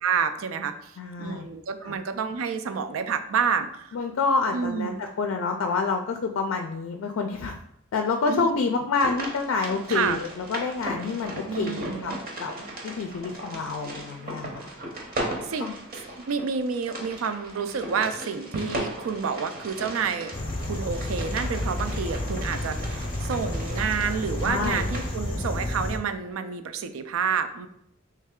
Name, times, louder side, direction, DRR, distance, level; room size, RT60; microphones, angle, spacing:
voice 1, 0.0-4.0 4.5-5.0 8.3-8.5 9.9-10.2 11.5-12.2 15.4-15.7 16.3-20.3 20.6-27.7, right 6 dB, 85° right, 9 dB, 0.4 m, -29 dB
voice 2, 1.0-1.5 1.8-2.0 3.9-7.6 7.9-12.1 12.4-12.5 12.8-14.7 15.6-15.7 24.4-24.8, left 4 dB, 80° left, 4 dB, 0.3 m, -28 dB
sound 1, 8.9-25.2, right 1 dB, 45° right, 0.8 m, -37 dB
sound 2, 20.3-26.0, left 1 dB, 25° left, 0.5 m, -31 dB
3.3 x 3.2 x 3.6 m, 0.73 s
head